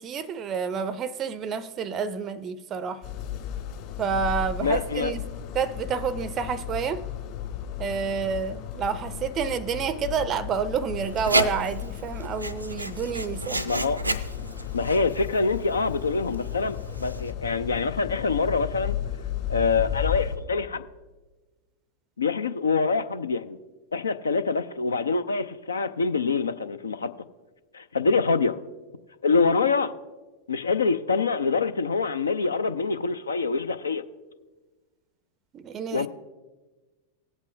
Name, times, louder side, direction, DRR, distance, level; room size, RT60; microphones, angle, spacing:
voice 1, 0.0-3.0 4.0-5.2 5.5-7.0 7.8-13.7 35.5-36.1, right 6 dB, 30° right, 0.4 m, -29 dB
sound 1, 3.0-20.4, left 9 dB, 45° left, 2.8 m, -34 dB
voice 2, 4.6-5.1 13.6-14.0 14.7-19.0 19.5-20.9 22.2-23.6 23.9-27.1 27.7-28.6 29.2-29.9 30.5-34.0 35.9-36.1, left 4 dB, 75° left, 0.4 m, -25 dB
Writing, 11.0-17.3, right 1 dB, 85° right, 0.5 m, -32 dB
18.0 x 8.1 x 2.6 m
figure-of-eight pair, 90°, 0 cm